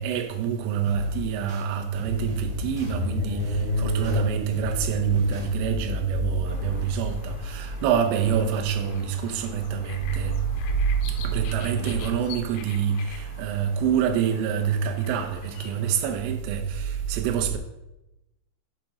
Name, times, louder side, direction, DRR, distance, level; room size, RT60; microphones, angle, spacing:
voice 1, 0.0-10.4 11.2-17.6, right 7 dB, 85° right, 3.3 m, -26 dB
sound 1, 0.8-1.6 1.9-2.9 3.4-4.2 4.5-5.5, left 4 dB, ahead, 2.0 m, -36 dB
sound 2, 1.8-10.0, left 1 dB, 40° right, 0.9 m, -31 dB
sound 3, 6.5-16.0, left 7 dB, 85° left, 3.2 m, -45 dB
7.5 x 5.2 x 6.0 m
omnidirectional pair, 5.7 m